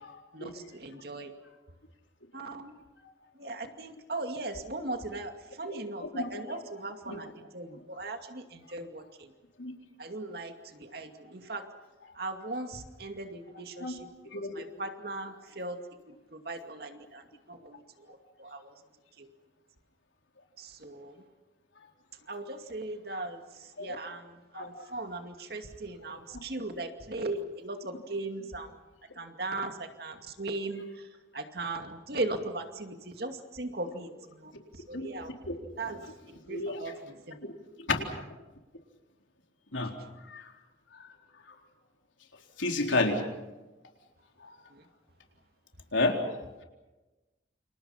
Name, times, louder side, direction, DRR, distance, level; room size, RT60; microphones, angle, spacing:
voice 1, 0.3-1.3 2.3-2.8 3.4-9.3 10.0-11.7 12.1-14.1 14.3-15.8 16.1-17.8 18.1-18.7 19.2-19.3 20.6-21.2 22.3-28.8 29.2-35.3 35.8-36.0 36.3-37.4 44.7-44.8, right 2 dB, 55° right, 6 dB, 2.4 m, -38 dB
voice 2, 14.3-14.6 23.8-24.0 24.5-24.7 34.9-35.1 35.5-35.6 36.5-36.8 38.0-38.1 39.7-39.9 40.3-40.5 42.6-43.2 44.4-44.5 45.9-46.6, left 2 dB, 85° left, 2 dB, 4.0 m, -31 dB
29.0 x 27.5 x 5.7 m, 1.1 s
head